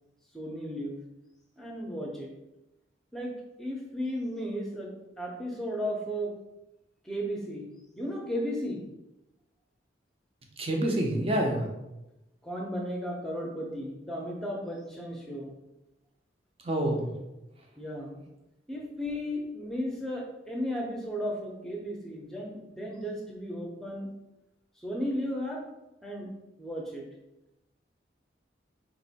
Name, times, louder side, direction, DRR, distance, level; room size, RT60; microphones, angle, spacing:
voice 1, 0.3-1.0 1.6-2.3 3.1-3.3 3.6-6.3 7.0-7.7 7.9-8.8 12.4-15.5 17.8-18.2 18.7-24.1 24.8-25.6 26.0-26.3 26.6-27.0, equal, ahead, -2 dB, 0.7 m, -34 dB
voice 2, 10.6-11.7 16.6-17.1, right 1 dB, 30° right, 1 dB, 0.7 m, -27 dB
4.3 x 2.7 x 4.1 m, 0.95 s
head